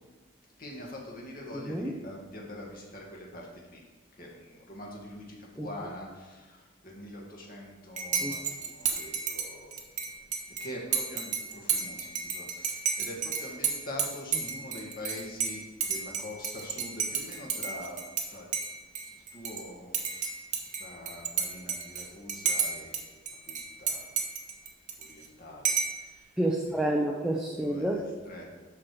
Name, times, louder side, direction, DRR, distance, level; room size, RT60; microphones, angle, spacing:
voice 1, 0.6-3.8 4.2-9.9 10.6-18.0 18.3-18.5 19.3-23.0 23.5-24.1 25.0-26.3 27.6-28.4, left 1 dB, 45° left, -2 dB, 1.9 m, -44 dB
voice 2, 1.5-1.9 5.6-5.7 8.2-8.3 26.4-28.1, right 1 dB, 5° right, -1 dB, 0.6 m, -29 dB
Dishes pots and pans / Cutlery silverware / Chink clink, 8.0-18.3 18.5-19.6 19.9-23.0 23.3-25.3 25.6-26.0, right 6 dB, 40° right, 1.1 m, -32 dB
12.0 x 4.7 x 4.8 m, 1.3 s
head